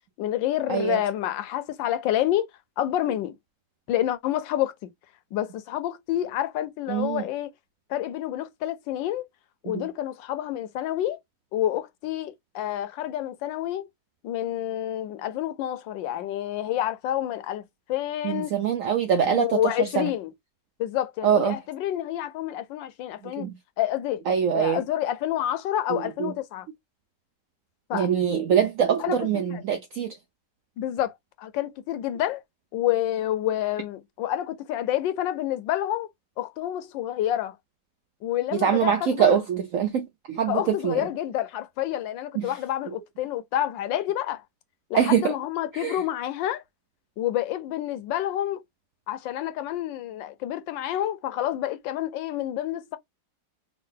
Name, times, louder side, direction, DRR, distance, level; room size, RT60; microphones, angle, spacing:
voice 1, 0.2-2.5 2.8-3.4 3.9-4.7 5.3-7.5 7.9-9.3 9.6-11.2 11.5-13.9 14.2-17.6 17.9-18.5 19.3-20.3 20.8-23.5 23.8-24.2 24.5-26.7 27.9-28.1 29.0-29.6 30.8-32.4 32.7-36.1 36.4-37.6 38.2-39.4 40.5-44.4 44.9-46.6 47.2-48.6 49.1-53.0, left 12 dB, 85° left, 1.4 m, -28 dB
voice 2, 0.7-1.0 6.9-7.2 9.7-9.8 18.2-20.1 21.2-21.6 23.4-23.5 24.3-24.8 26.2-26.3 27.9-30.2 38.5-41.0 42.4-42.5 44.9-45.3 45.7-46.0, right 8 dB, 75° right, 0.7 m, -24 dB
3.6 x 2.3 x 3.7 m
omnidirectional pair, 2.0 m